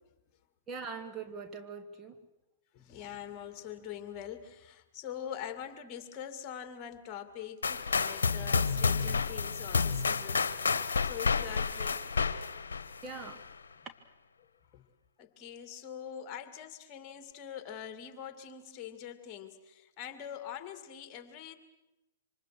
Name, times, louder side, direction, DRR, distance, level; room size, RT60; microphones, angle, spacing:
voice 1, 0.7-2.2 13.0-13.5 13.8-13.9, right 5 dB, 20° right, 7 dB, 1.5 m, -42 dB
voice 2, 2.7-10.5 11.0-12.1 14.4-14.5 14.7-14.8 15.2-21.6, left 9 dB, 30° left, 10 dB, 2.3 m, -44 dB
sound 1, 7.6-13.5, left 5 dB, 70° left, 1.2 m, -30 dB
27.0 x 25.5 x 6.3 m, 0.99 s
figure-of-eight pair, 110°, 0 cm